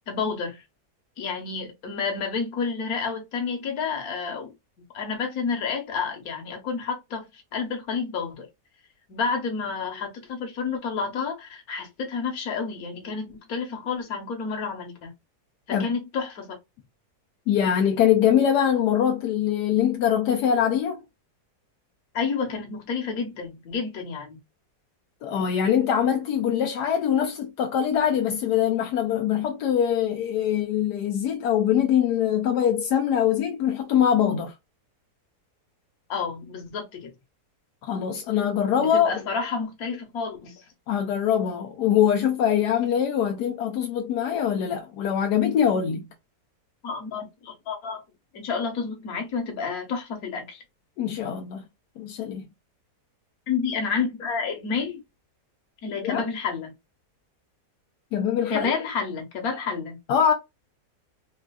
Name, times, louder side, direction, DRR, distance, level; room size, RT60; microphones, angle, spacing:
voice 1, 0.1-0.6 1.2-4.5 4.9-8.5 9.1-15.1 15.7-16.5 22.1-24.4 36.1-37.1 38.7-40.7 46.8-48.0 48.3-50.6 53.5-55.0 55.8-56.7 58.5-60.0, left 5 dB, 65° left, 1.4 m, -30 dB
voice 2, 17.5-21.0 25.2-34.5 37.8-39.1 40.9-46.1 51.0-51.7 52.0-52.5 56.0-56.2 58.1-58.7 60.1-60.3, left 9 dB, 85° left, 1.2 m, -23 dB
4.3 x 2.4 x 2.3 m
omnidirectional pair, 1.7 m